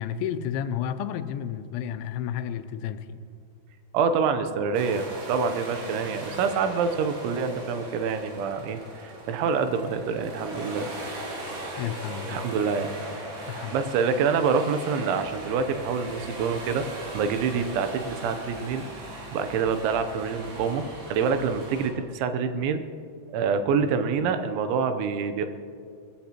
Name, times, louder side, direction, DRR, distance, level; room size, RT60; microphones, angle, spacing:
voice 1, 0.0-3.2 11.8-12.5 13.5-13.8, left 9 dB, 85° left, 10 dB, 2.9 m, -31 dB
voice 2, 3.9-10.9 12.3-12.9 13.7-16.8 17.1-18.9 19.3-22.8 23.3-25.5, right 5 dB, 85° right, 9 dB, 3.1 m, -26 dB
sound 1, 4.7-21.9, right 1 dB, 55° right, 4.2 m, -39 dB
sound 2, 15.2-21.7, left 1 dB, 5° right, 2.8 m, -50 dB
21.5 x 15.5 x 2.9 m, 2.4 s
omnidirectional pair, 5.4 m